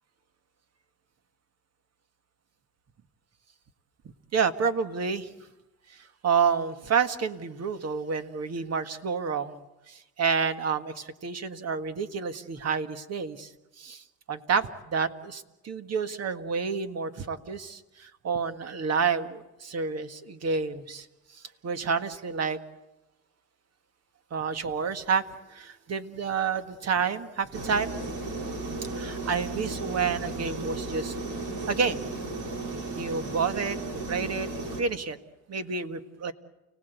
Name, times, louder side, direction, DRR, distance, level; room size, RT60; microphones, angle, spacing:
voice 1, 4.3-5.3 6.2-13.5 13.8-21.1 21.6-22.6 24.3-25.2 25.5-27.9 28.9-31.1 31.7-32.0 33.0-34.5 34.8-35.2 35.5-36.3, right 5 dB, 55° right, 9 dB, 1.7 m, -29 dB
sound 1, 27.5-34.8, right 2 dB, 75° right, 4.3 m, -34 dB
29.5 x 18.0 x 8.2 m, 1.0 s
cardioid pair, 90°, 30 cm